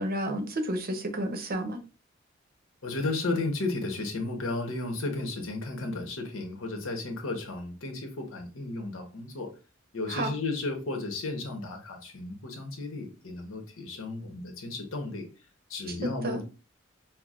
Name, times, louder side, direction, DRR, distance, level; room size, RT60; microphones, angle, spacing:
voice 1, 0.0-1.8 10.1-10.3 15.9-16.4, right 1 dB, 45° right, 6 dB, 0.8 m, -31 dB
voice 2, 2.8-9.5 9.9-15.3 15.7-16.4, left 2 dB, 70° left, 4 dB, 1.0 m, -34 dB
5.8 x 2.0 x 2.4 m, 0.33 s
head